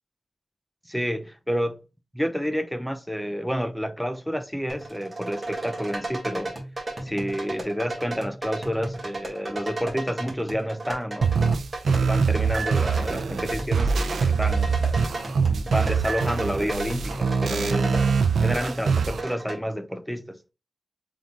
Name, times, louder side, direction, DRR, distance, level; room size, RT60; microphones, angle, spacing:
voice 1, 0.9-1.8 2.1-6.6 7.0-11.4 11.9-14.9 15.5-18.1 18.4-20.4, equal, ahead, 0.5 m, -29 dB
sound 1, 4.7-19.6, right 2 dB, 25° right, 1.6 m, -35 dB
sound 2, 11.2-19.2, right 5 dB, 80° right, 0.4 m, -24 dB
3.8 x 3.6 x 2.9 m
wide cardioid pair, 105°, 0 cm